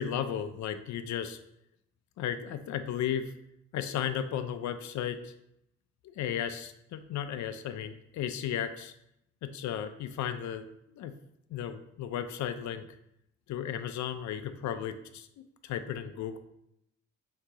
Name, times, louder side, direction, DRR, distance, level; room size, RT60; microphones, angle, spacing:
voice 1, 0.0-1.4 2.2-3.3 3.7-5.3 6.0-8.9 9.4-11.1 11.5-12.9 13.5-15.3 15.6-16.4, left 9 dB, 70° left, 9 dB, 0.5 m, -34 dB
3.7 x 2.8 x 4.7 m, 0.80 s
cardioid pair, 90°, 30 cm